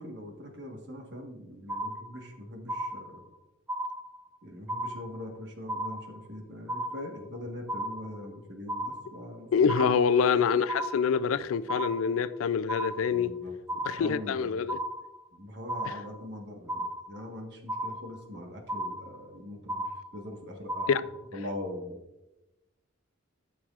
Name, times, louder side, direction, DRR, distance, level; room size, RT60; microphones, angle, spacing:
voice 1, 0.0-3.2 4.4-10.2 13.1-13.5 13.8-14.6 15.3-19.8 20.1-21.0 21.3-22.0, left 1 dB, 55° right, 1.4 m, -42 dB
sound 1, 1.7-2.4 2.7-3.4 3.7-4.4 4.7-5.4 5.7-6.4 6.7-7.4 7.7-8.4 8.7-9.4 9.7-10.4 10.7-11.4 11.7-12.4 12.7-13.4 13.7-14.4 14.7-15.4 15.7-16.4 16.7-17.4 17.7-18.4 18.7-19.4 19.7-20.4 20.7-21.4, right 1 dB, 10° right, 0.5 m, -35 dB
voice 2, 9.5-13.3 13.9-14.8 15.9-16.0 20.9-21.0, left 6 dB, 85° left, 0.4 m, -26 dB
12.5 x 6.1 x 2.4 m
head